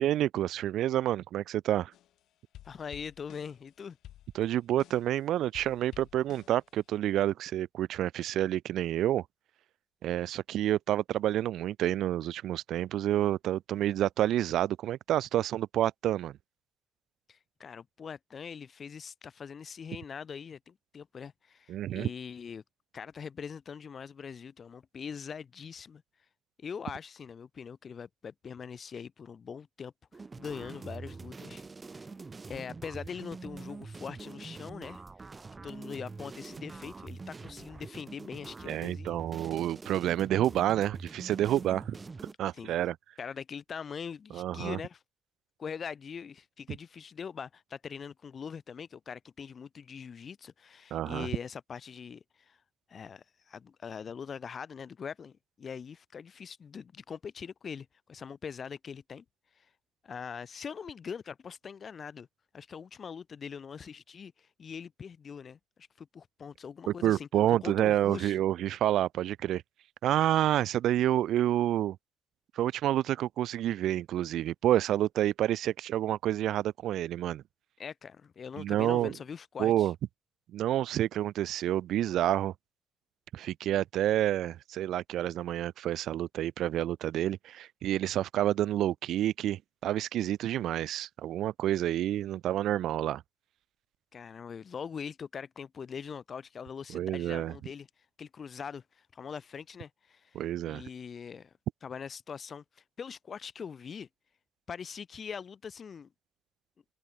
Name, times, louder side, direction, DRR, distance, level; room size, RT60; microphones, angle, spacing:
voice 1, 0.0-1.9 4.3-9.2 10.0-16.4 21.7-22.1 38.7-42.0 42.4-42.9 44.3-44.8 50.9-51.3 66.9-69.6 70.0-72.0 72.5-77.4 78.6-79.1 79.6-79.9 80.5-82.5 83.3-93.2 96.9-97.5 100.3-100.8, right 12 dB, 80° right, 1.2 m, -29 dB
sound 1, 1.9-2.2 2.5-5.2 5.5-6.9, left 13 dB, 80° left, 2.3 m, -53 dB
voice 2, 2.6-4.0 17.3-22.6 22.9-26.0 26.6-31.6 31.9-32.1 32.5-35.3 35.6-39.2 42.5-42.7 43.2-45.0 45.6-52.6 52.9-59.2 59.6-59.7 60.0-62.3 62.5-67.3 67.6-68.4 77.8-79.9 94.1-97.9 98.2-101.5 101.8-104.1 104.7-106.1, left 6 dB, 45° left, 2.3 m, -42 dB
sound 2, 30.1-42.3, right 4 dB, 30° right, 2.3 m, -45 dB
cardioid pair, 90°, 0 cm